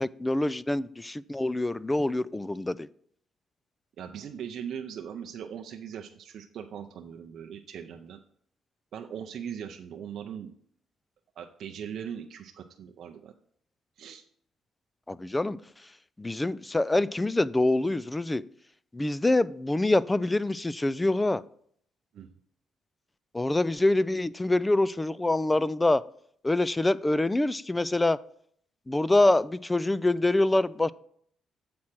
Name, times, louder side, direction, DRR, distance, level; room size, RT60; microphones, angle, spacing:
voice 1, 0.0-2.9 15.1-15.6 16.2-18.4 18.9-21.4 23.3-26.0 26.4-28.2 28.9-30.9, left 2 dB, 15° left, 19 dB, 0.3 m, -25 dB
voice 2, 4.0-8.2 8.9-10.5 11.4-13.3 14.0-14.2 22.1-22.3, right 8 dB, 70° right, 4 dB, 0.5 m, -40 dB
7.6 x 4.3 x 5.9 m, 0.63 s
cardioid pair, 90°, 0 cm